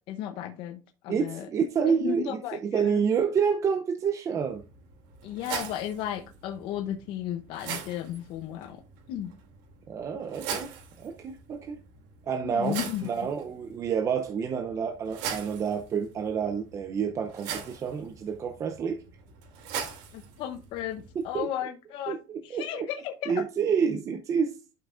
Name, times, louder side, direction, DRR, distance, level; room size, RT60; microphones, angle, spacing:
voice 1, 0.1-1.5 1.9-3.0 5.2-8.8 9.1-9.3 12.4-13.1 20.1-22.2 22.4-23.4, left 11 dB, 60° left, 0.7 m, -34 dB
voice 2, 1.1-4.6 9.9-11.8 12.3-12.8 13.0-19.0 21.3-21.5 22.1-22.9 23.3-24.6, right 6 dB, 35° right, 0.6 m, -28 dB
sound 1, 4.4-21.4, right 7 dB, 85° right, 2.6 m, -41 dB
11.5 x 5.7 x 2.5 m
cardioid pair, 140°, 9 cm